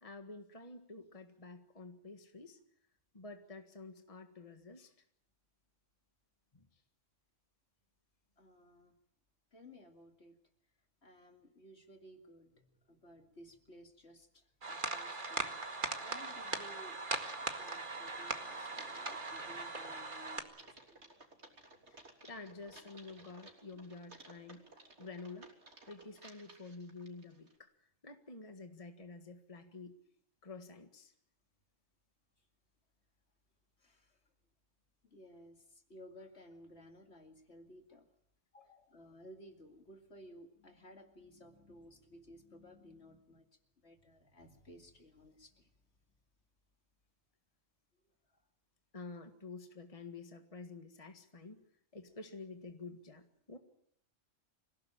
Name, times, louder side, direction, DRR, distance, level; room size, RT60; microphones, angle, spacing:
voice 1, 0.0-2.6 3.1-4.9 6.5-6.6 21.9-24.6 25.0-25.5 25.9-27.7 28.0-29.9 30.4-31.1 38.5-38.9 48.9-51.6 51.9-53.6, left 3 dB, 25° left, 6 dB, 1.8 m, -50 dB
voice 2, 8.4-8.9 9.5-10.3 11.0-14.4 14.7-17.0 17.5-21.1 33.8-34.1 35.0-35.6 35.9-38.0 38.9-43.5 43.8-45.7, equal, 60° left, 5 dB, 2.8 m, -57 dB
sound 1, 14.6-20.4, right 3 dB, 40° right, 2.1 m, -40 dB
Typing, 17.1-27.6, right 2 dB, 60° right, 3.7 m, -59 dB
26.5 x 17.0 x 8.9 m, 0.72 s
omnidirectional pair, 1.3 m